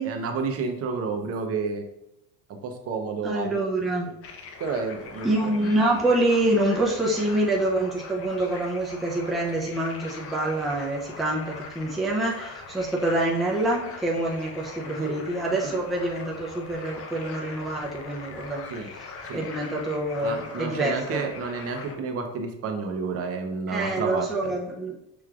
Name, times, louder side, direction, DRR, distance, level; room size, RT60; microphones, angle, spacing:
voice 1, 0.0-1.8 2.6-3.6 4.1-4.2 4.6-5.5 15.0-15.2 15.5-15.7 18.7-18.9 19.2-19.5 20.2-24.5, right 4 dB, 40° right, 4 dB, 0.7 m, -30 dB
voice 2, 3.2-4.1 5.2-18.6 19.3-21.2 23.7-25.0, right 1 dB, ahead, -3 dB, 0.5 m, -26 dB
sound 1, 4.2-22.0, left 4 dB, 40° left, 0.7 m, -42 dB
5.9 x 3.1 x 2.4 m, 0.85 s
supercardioid pair, 120°, 37 cm